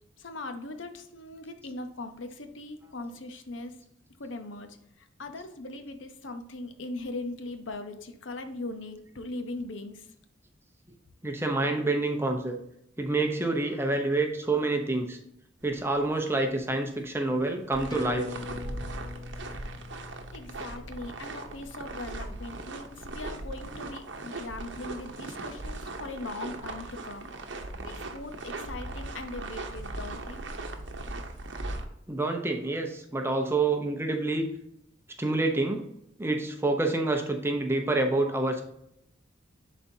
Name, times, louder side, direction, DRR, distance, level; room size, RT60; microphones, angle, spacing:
voice 1, 0.2-3.8 4.2-10.1 20.3-27.3 27.8-30.5, left 2 dB, 75° left, 8 dB, 0.8 m, -40 dB
voice 2, 11.2-12.6 13.0-15.2 15.6-18.3 32.1-34.5 35.2-35.9 36.2-38.6, right 2 dB, 10° right, 3 dB, 0.7 m, -27 dB
sound 1, 15.6-31.9, right 2 dB, 65° right, 0.9 m, -39 dB
sound 2, 17.9-22.8 23.2-23.3, left 4 dB, 20° left, 0.8 m, -43 dB
10.5 x 4.2 x 2.8 m, 0.77 s
head